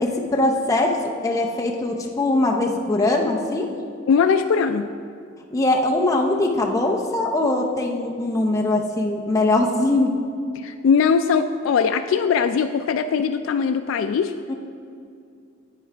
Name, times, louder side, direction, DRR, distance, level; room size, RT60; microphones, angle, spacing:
voice 1, 0.0-3.7 5.5-10.1 14.5-14.6, left 2 dB, 15° left, 0 dB, 0.6 m, -21 dB
voice 2, 4.1-4.9 10.6-14.3, left 6 dB, 80° left, 7 dB, 0.3 m, -20 dB
10.5 x 8.6 x 3.3 m, 2.4 s
head